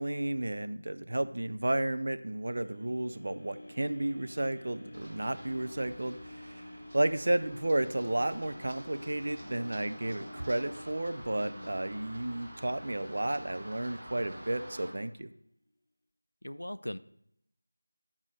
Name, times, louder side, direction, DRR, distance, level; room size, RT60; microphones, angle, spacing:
voice 1, 0.0-6.7 6.9-15.3, right 1 dB, 55° right, 11 dB, 0.4 m, -32 dB
sound 1, 2.5-14.6 15.1-15.2, left 1 dB, 25° left, 1.5 m, -50 dB
Run, 4.9-14.9, right 1 dB, 35° right, 1.8 m, -49 dB
voice 2, 11.4-11.7 16.4-17.0, left 1 dB, 85° left, 14 dB, 0.4 m, -40 dB
5.2 x 5.1 x 6.3 m, 0.75 s
figure-of-eight pair, 170°, 0 cm